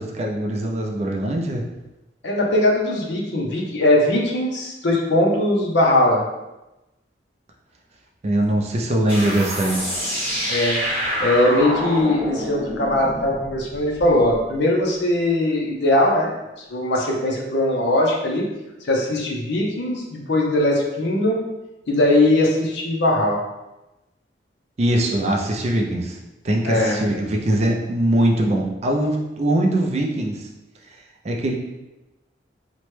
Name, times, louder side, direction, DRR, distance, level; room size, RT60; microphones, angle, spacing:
voice 1, 0.0-1.6 8.2-9.8 24.8-26.2 26.4-30.5 31.2-31.5, right 1 dB, 35° right, 1 dB, 0.4 m, -22 dB
voice 2, 2.2-6.2 10.5-10.8 11.2-18.4 18.8-21.4 21.9-23.4 26.7-27.0, left 1 dB, 70° left, -1 dB, 0.6 m, -20 dB
sound 1, 9.1-14.4, equal, 10° left, 1.4 m, -27 dB
3.0 x 2.1 x 3.1 m, 0.99 s
head